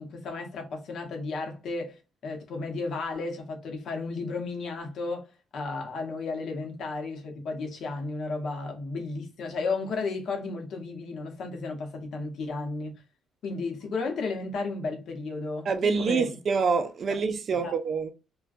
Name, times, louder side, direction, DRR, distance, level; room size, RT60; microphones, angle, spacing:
voice 1, 0.0-5.3 5.5-13.0 13.4-16.3 17.5-17.7, left 3 dB, 65° left, 0.7 m, -33 dB
voice 2, 15.7-18.1, right 5 dB, 50° right, 0.3 m, -26 dB
2.4 x 2.2 x 2.4 m
cardioid pair, 130°, 0 cm